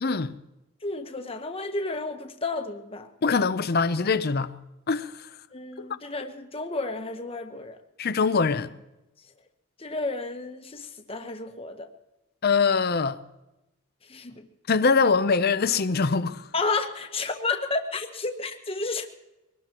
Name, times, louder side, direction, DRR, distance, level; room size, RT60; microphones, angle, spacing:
voice 1, 0.0-0.3 3.2-4.5 4.9-5.1 5.8-5.9 8.0-8.7 12.4-13.2 14.7-16.4, left 4 dB, 45° left, 0.6 m, -23 dB
voice 2, 0.8-3.1 5.5-7.8 9.8-11.9 14.1-14.4 16.5-19.1, left 3 dB, 25° left, 1.1 m, -31 dB
22.5 x 18.5 x 3.0 m
head